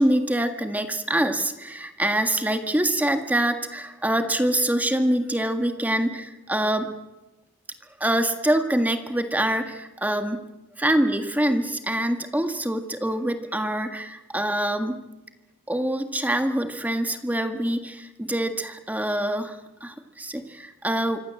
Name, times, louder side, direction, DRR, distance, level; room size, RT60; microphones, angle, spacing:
voice 1, 0.0-6.9 8.0-10.4 10.8-15.0 15.7-21.2, right 1 dB, 5° right, 6 dB, 1.8 m, -25 dB
26.5 x 24.5 x 7.7 m, 1.0 s
head